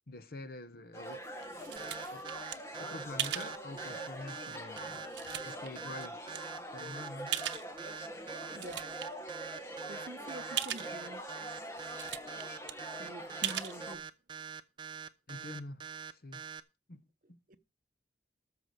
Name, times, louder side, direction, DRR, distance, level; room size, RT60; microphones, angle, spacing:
voice 1, 0.1-1.3 2.1-2.3 2.8-5.0 5.4-6.2 6.7-7.4 15.3-15.8 16.1-16.4 16.9-17.0 17.3-17.4, left 2 dB, 55° left, 1.0 m, -46 dB
sound 1, 0.9-14.0, equal, 15° left, 1.6 m, -44 dB
sound 2, 1.0-2.6 3.2-3.5 4.2-4.3 4.8-5.7 6.3-6.4 7.3-7.9 8.3-9.0 9.5-9.6 9.8-9.9 10.6-10.9 11.5-11.6 11.8-12.4 12.7-12.8 13.4-13.8, right 11 dB, 85° right, 0.8 m, -37 dB
sound 3, 1.8-16.6, right 8 dB, 25° right, 0.8 m, -44 dB
voice 2, 8.5-8.8 9.9-11.2 13.0-14.0 17.5-17.6, right 1 dB, 50° right, 1.0 m, -47 dB
13.5 x 4.9 x 8.0 m
head